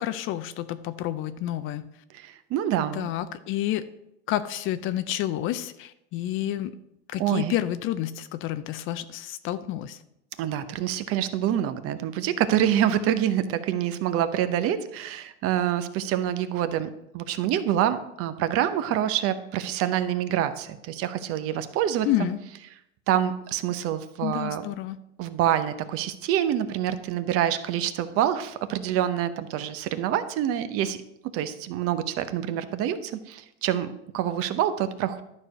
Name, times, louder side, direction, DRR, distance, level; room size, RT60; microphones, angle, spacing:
voice 1, 0.0-1.9 2.9-3.8 4.3-6.7 7.1-10.0 22.0-22.4 24.2-25.0, left 13 dB, 35° left, 13 dB, 0.5 m, -29 dB
voice 2, 2.1-3.1 7.2-7.5 10.4-16.9 17.1-22.3 23.1-24.6 25.2-31.0 31.3-35.2, right 10 dB, 40° right, 12 dB, 0.8 m, -26 dB
12.0 x 4.7 x 6.4 m, 0.81 s
supercardioid pair, 130°, 35 cm